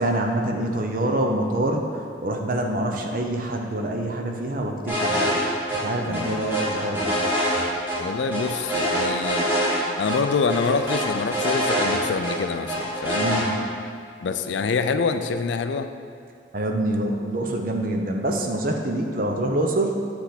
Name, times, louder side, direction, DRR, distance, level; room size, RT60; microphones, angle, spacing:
voice 1, 0.0-1.8 2.2-5.4 5.7-7.1 13.2-13.5 16.5-20.0, right 1 dB, 50° right, 2 dB, 0.7 m, -25 dB
sound 1, 4.9-5.4 5.7-5.8 6.1-8.0 8.3-9.8 10.0-10.2 10.5-12.3 12.7-13.4, equal, 10° right, 1.6 m, -24 dB
voice 2, 6.1-6.5 8.0-9.5 10.0-13.3 14.2-15.9, left 4 dB, 75° left, 9 dB, 0.4 m, -26 dB
7.9 x 3.4 x 5.9 m, 2.2 s
head